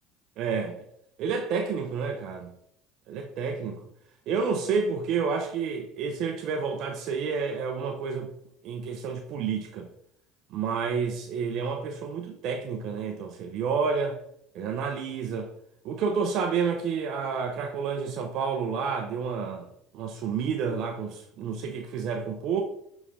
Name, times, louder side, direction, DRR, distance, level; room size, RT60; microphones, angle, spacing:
voice 1, 0.4-0.8 1.2-2.5 3.1-3.8 4.3-8.3 8.6-9.9 10.5-14.2 14.5-15.5 15.8-19.7 19.9-22.6, right 5 dB, 60° right, 0.7 m, -29 dB
8.4 x 3.7 x 3.3 m
supercardioid pair, 85°, 0 cm